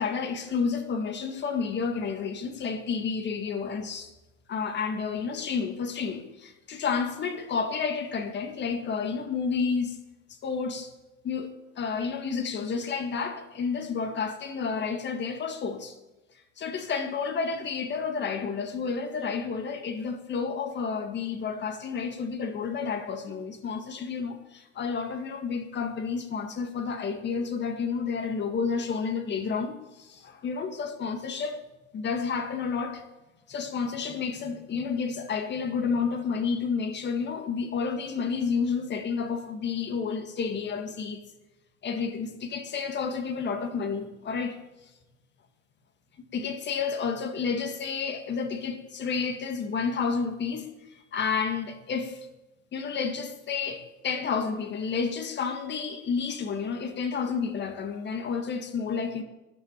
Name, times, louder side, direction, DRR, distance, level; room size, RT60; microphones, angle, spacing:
voice 1, 0.0-4.1 4.5-10.0 10.4-10.9 11.2-16.0 16.6-31.6 31.9-33.0 33.5-41.2 41.8-44.6 46.3-52.3 52.7-59.2, left 5 dB, 25° left, 1.8 m, -30 dB
13.5 x 11.5 x 7.2 m
hypercardioid pair, 115°, 40 cm